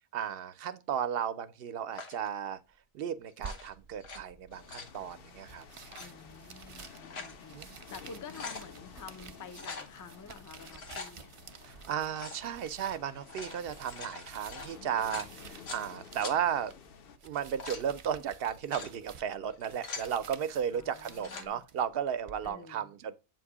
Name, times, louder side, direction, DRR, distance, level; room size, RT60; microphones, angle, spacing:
voice 1, 0.1-2.6 2.9-5.6 7.5-7.8 11.7-16.7 17.2-23.1, right 8 dB, 70° right, 0.7 m, -34 dB
sound 1, 1.9-2.3 3.3-4.2 4.5-5.0 5.8-6.1 6.8-7.4 7.8-7.9 8.1-8.7 9.5-9.9 10.6-11.1 12.1-12.4 13.1-15.9 16.2-16.4 17.2-17.9 18.5-18.9 19.5-20.1 21.0-21.5, left 4 dB, 85° left, 1.3 m, -43 dB
sound 2, 3.4-22.5, right 5 dB, 50° right, 0.4 m, -52 dB
sound 3, 4.5-17.2, left 7 dB, 65° left, 0.8 m, -53 dB
voice 2, 6.0-11.3 20.7-21.6 22.4-22.9, left 5 dB, 30° left, 0.4 m, -49 dB
7.6 x 2.6 x 4.8 m
omnidirectional pair, 1.0 m